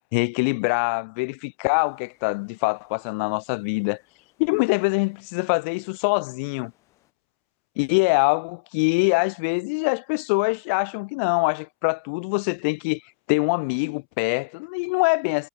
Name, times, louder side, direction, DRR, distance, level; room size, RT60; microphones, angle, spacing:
voice 1, 0.1-4.0 4.4-6.7 7.8-13.0 13.3-15.5, left 31 dB, 60° left, 0.5 m, -24 dB
sound 1, 1.7-7.1, left 16 dB, 45° left, 7.7 m, -66 dB
supercardioid pair, 135°, 7 cm